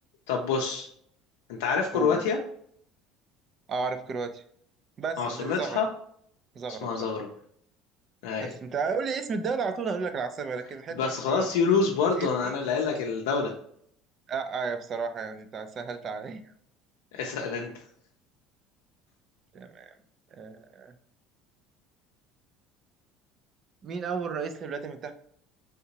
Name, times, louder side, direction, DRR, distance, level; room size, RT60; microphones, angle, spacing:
voice 1, 0.3-0.9 1.5-2.4 5.2-5.9 6.8-7.3 8.2-8.5 11.0-13.5 17.1-17.7, left 5 dB, 90° left, 0 dB, 0.5 m, -27 dB
voice 2, 3.7-4.4 5.0-5.9 6.5-7.1 8.4-11.0 11.3-11.5 12.2-12.5 14.3-16.5 19.5-19.9 20.3-20.9 23.8-25.1, right 5 dB, 45° right, 9 dB, 0.5 m, -33 dB
3.5 x 2.8 x 2.8 m, 0.65 s
supercardioid pair, 95°, 0 cm